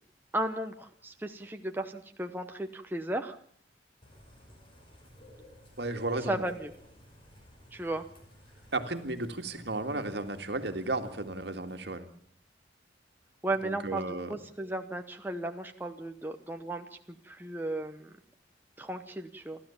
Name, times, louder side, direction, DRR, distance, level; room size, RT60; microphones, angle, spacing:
voice 1, 0.3-3.4 6.3-6.7 7.7-8.0 13.4-16.9 17.2-18.1 18.8-19.6, right 1 dB, 10° right, 5 dB, 0.9 m, -35 dB
Bird / Rain, 4.0-12.2, equal, 30° left, 5.7 m, -56 dB
voice 2, 5.8-6.5 8.7-12.1 13.6-14.4, right 2 dB, 65° right, 6 dB, 2.0 m, -34 dB
29.0 x 13.0 x 7.2 m, 0.62 s
head